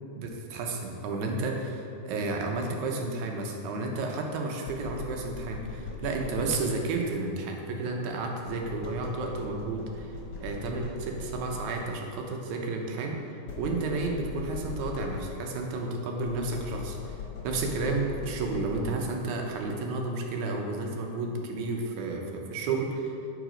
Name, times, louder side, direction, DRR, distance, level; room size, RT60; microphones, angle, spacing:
voice 1, 0.1-10.1 10.4-23.2, right 3 dB, 75° right, 1 dB, 2.2 m, -32 dB
sound 1, 4.7-7.1 8.5-12.0 13.5-15.7 16.2-19.3, left 4 dB, 55° left, 1.8 m, -40 dB
7.9 x 4.9 x 5.0 m, 2.7 s
omnidirectional pair, 3.6 m